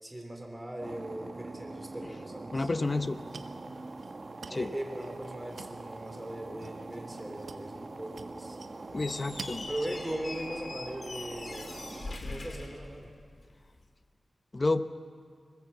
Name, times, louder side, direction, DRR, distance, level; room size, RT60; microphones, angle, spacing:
voice 1, 0.0-2.7 4.5-8.6 9.7-11.7 12.2-13.1, right 1 dB, 10° right, 2 dB, 3.5 m, -39 dB
sound 1, 0.8-12.2, right 2 dB, 35° right, 0.9 m, -44 dB
voice 2, 2.5-3.2 4.5-4.7 8.9-9.7 14.5-14.8, left 2 dB, 30° left, 10 dB, 0.8 m, -29 dB
sound 2, 2.8-10.2, right 5 dB, 85° right, 1.0 m, -50 dB
Squeak, 8.9-13.5, left 2 dB, 50° left, 2.5 m, -42 dB
23.0 x 21.0 x 7.2 m, 2.1 s
wide cardioid pair, 130°, 0 cm